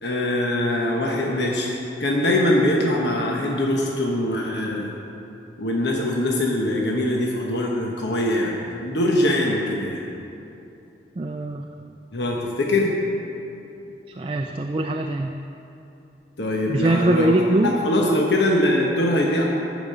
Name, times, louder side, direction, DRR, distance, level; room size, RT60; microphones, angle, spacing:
voice 1, 0.0-1.7 2.0-5.0 5.6-10.0 12.1-12.9 16.4-17.3 17.6-19.5, left 1 dB, 70° left, -2 dB, 1.1 m, -22 dB
voice 2, 11.2-11.7 14.1-15.3 16.7-18.1, right 1 dB, 30° right, 4 dB, 0.3 m, -22 dB
12.0 x 5.1 x 7.4 m, 2.8 s
head